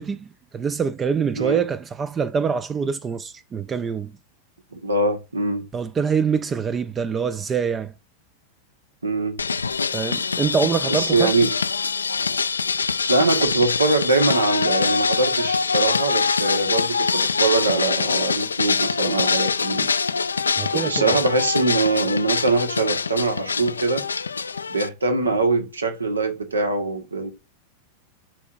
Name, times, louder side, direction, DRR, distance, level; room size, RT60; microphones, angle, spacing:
voice 1, 0.0-4.1 5.7-7.9 9.9-11.3 20.6-21.1, right 6 dB, 20° right, 0.5 m, -25 dB
voice 2, 4.7-5.7 9.0-9.4 10.9-11.5 13.1-19.9 20.8-24.0 24.7-27.3, right 3 dB, 75° right, 1.5 m, -22 dB
sound 1, 9.4-24.9, left 5 dB, 75° left, 0.4 m, -24 dB
12.0 x 4.5 x 2.6 m
figure-of-eight pair, 90°, 0 cm